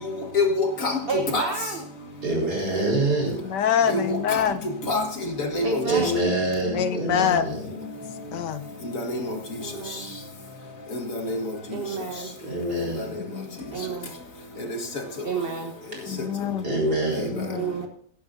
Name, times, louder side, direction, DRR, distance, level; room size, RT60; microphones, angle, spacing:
voice 1, 0.0-1.5 3.9-4.4 4.9-5.0 5.4-5.8 8.9-9.4 10.9-11.4 13.0-13.1 14.7-14.8, left 2 dB, 50° left, 3 dB, 2.1 m, -26 dB
voice 2, 1.1-1.8 5.6-6.2 9.6-10.1 11.7-12.4 13.7-14.1 15.2-15.7 17.5-17.9, right 5 dB, 40° right, 3 dB, 1.2 m, -30 dB
voice 3, 2.2-3.6 5.8-7.8 12.4-13.4 16.6-17.6, right 2 dB, 65° right, -1 dB, 5.9 m, -26 dB
voice 4, 3.4-4.6 6.7-7.6 8.3-8.7 13.2-13.6 16.1-16.7 17.3-17.7, left 8 dB, 80° left, 10 dB, 1.4 m, -25 dB
16.5 x 11.0 x 2.6 m, 0.64 s
omnidirectional pair, 1.8 m